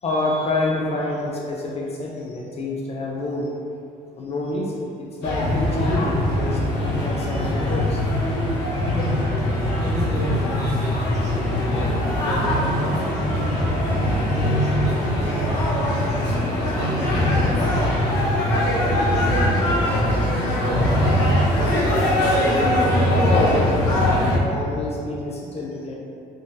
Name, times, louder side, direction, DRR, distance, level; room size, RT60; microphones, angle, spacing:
voice 1, 0.0-3.5 4.2-8.0 23.3-26.0, left 2 dB, 40° left, -2 dB, 0.4 m, -27 dB
sound 1, 5.2-24.4, left 1 dB, 85° left, 0.8 m, -21 dB
voice 2, 9.8-13.8 14.2-16.4 16.7-19.3, right 2 dB, 45° right, -7 dB, 1.0 m, -30 dB
3.6 x 2.3 x 2.6 m, 2.5 s
cardioid pair, 110°, 17 cm